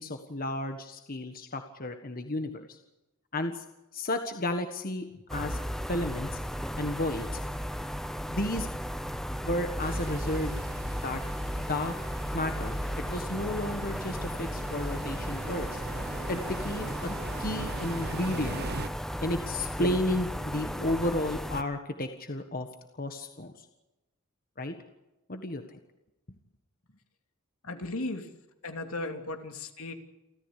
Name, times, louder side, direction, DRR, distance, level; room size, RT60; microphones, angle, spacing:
voice 1, 0.0-2.8 3.3-3.6 3.9-5.6 5.9-6.4 6.8-7.4 8.3-8.7 9.4-10.5 11.0-11.2 11.6-12.0 12.3-15.8 16.3-18.6 19.2-22.7 23.0-23.7 24.6-24.7 25.3-25.8, left 1 dB, 40° left, 6 dB, 1.5 m, -32 dB
sound 1, 5.3-21.6, equal, ahead, 1.0 m, -35 dB
sound 2, 9.8-18.9, right 3 dB, 45° right, 1.0 m, -42 dB
voice 2, 27.6-28.3 28.6-29.9, left 2 dB, 75° left, 5 dB, 2.9 m, -36 dB
29.0 x 14.0 x 8.4 m, 0.98 s
head